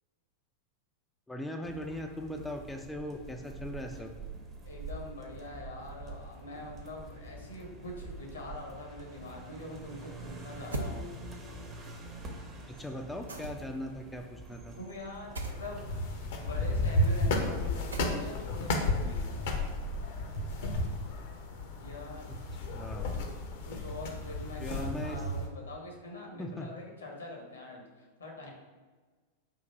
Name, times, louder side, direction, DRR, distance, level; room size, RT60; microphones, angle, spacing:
voice 1, 1.3-4.1 12.8-14.8 22.7-23.2 24.6-25.2 26.4-26.7, left 1 dB, 5° left, 3 dB, 0.4 m, -39 dB
sound 1, 1.6-20.9, right 2 dB, 20° right, 0.7 m, -46 dB
voice 2, 4.6-11.1 14.8-15.9 16.4-19.4 21.8-22.3 23.7-28.5, left 1 dB, 70° left, 0 dB, 0.9 m, -44 dB
sound 2, 10.7-11.0 13.3-13.8 15.3-15.6 17.9-18.4, right 2 dB, 75° right, 0.5 m, -37 dB
sound 3, 15.5-25.5, left 1 dB, 55° left, 0.6 m, -33 dB
3.8 x 2.6 x 4.4 m, 1.4 s
figure-of-eight pair, 90°, 0 cm